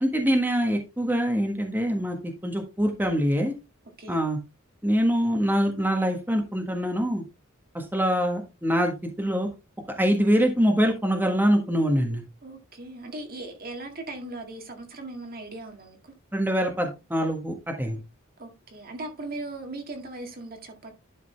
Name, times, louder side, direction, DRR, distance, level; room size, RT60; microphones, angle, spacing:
voice 1, 0.0-3.5 4.1-4.4 4.8-7.2 7.7-9.5 9.9-12.2 16.3-18.0, equal, 10° right, 1.4 m, -24 dB
voice 2, 12.4-16.1 18.4-20.9, right 2 dB, 45° right, 1.9 m, -38 dB
11.0 x 5.1 x 3.3 m
head